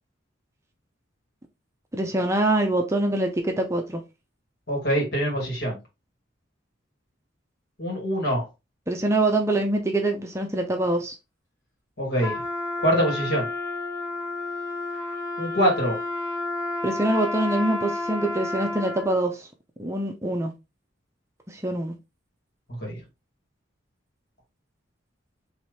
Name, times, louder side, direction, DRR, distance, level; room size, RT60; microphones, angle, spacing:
voice 1, 1.9-4.0 8.9-11.1 16.8-19.5 19.8-20.5 21.5-21.9, right 1 dB, 15° right, 0.6 m, -24 dB
voice 2, 4.7-5.8 7.8-8.4 12.0-12.4 12.8-13.5 15.4-15.9 22.8-23.0, equal, 60° left, 2.4 m, -24 dB
Trumpet, 12.2-19.2, left 2 dB, 15° left, 2.1 m, -31 dB
4.5 x 3.2 x 3.2 m
head